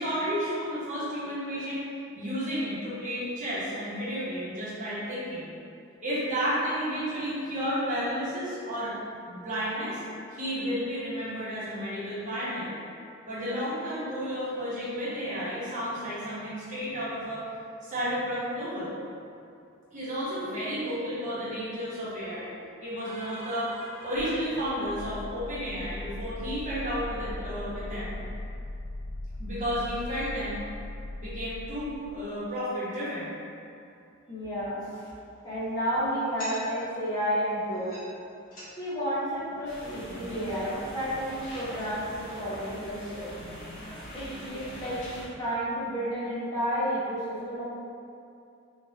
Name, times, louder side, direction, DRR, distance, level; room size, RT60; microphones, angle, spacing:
voice 1, 0.0-1.8 2.1-5.5 6.0-8.9 9.3-10.0 10.3-12.7 13.3-17.4 17.8-18.9 19.9-22.5 22.8-28.2 29.4-30.6 31.1-33.3, equal, 35° right, -11 dB, 1.0 m, -32 dB
sound 1, 24.1-32.3, left 1 dB, 90° left, 0.3 m, -39 dB
voice 2, 34.3-35.1 35.4-37.9 38.8-43.3 44.1-47.6, equal, 20° left, -11 dB, 0.6 m, -31 dB
sound 2, 34.9-42.2, equal, 40° left, 1.1 m, -50 dB
sound 3, 39.7-45.3, equal, 60° left, 0.9 m, -41 dB
3.1 x 2.4 x 2.8 m, 2.5 s
head